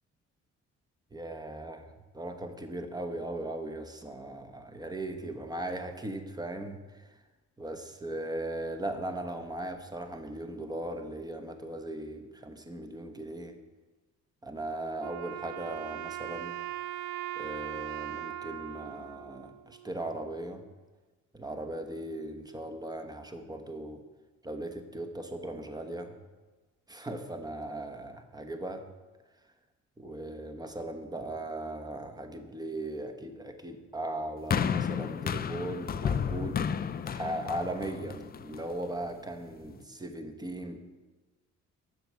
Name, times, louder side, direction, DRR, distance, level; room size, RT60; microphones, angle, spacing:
voice 1, 1.1-1.8 2.1-6.8 7.6-13.5 14.4-16.6 17.4-20.6 21.3-24.0 24.4-26.1 26.9-28.8 30.0-36.6 37.1-40.8, right 1 dB, 15° right, 5 dB, 1.0 m, -38 dB
Wind instrument woodwind instrument, 15.0-20.2, right 13 dB, 70° right, 0.5 m, -40 dB
sound 1, 34.5-38.9 39.6-39.7, left 7 dB, 30° left, 0.4 m, -32 dB
7.8 x 6.0 x 6.8 m, 1.2 s
cardioid pair, 90°, 30 cm